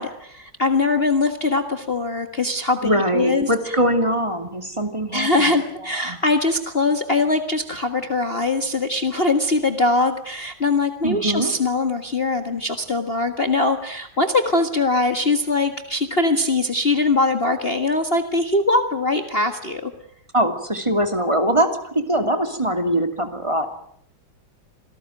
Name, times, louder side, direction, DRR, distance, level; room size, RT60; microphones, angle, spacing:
voice 1, 0.0-3.7 5.1-19.9, left 2 dB, 30° left, 6 dB, 1.7 m, -22 dB
voice 2, 2.8-5.5 5.9-6.2 11.0-11.5 20.3-23.7, right 1 dB, 15° right, 6 dB, 2.6 m, -22 dB
27.0 x 18.5 x 9.1 m, 0.67 s
omnidirectional pair, 2.1 m